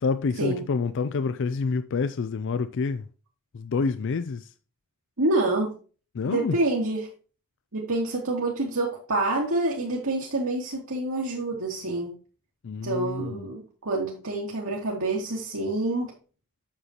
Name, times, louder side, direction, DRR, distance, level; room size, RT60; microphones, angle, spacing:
voice 1, 0.0-3.1 3.5-4.5 6.1-6.6 12.6-13.5, left 4 dB, 55° left, 0.4 m, -28 dB
voice 2, 5.2-5.7 6.3-7.1 7.7-12.1 12.8-16.1, right 2 dB, 70° right, 2.1 m, -27 dB
8.6 x 6.8 x 2.9 m
head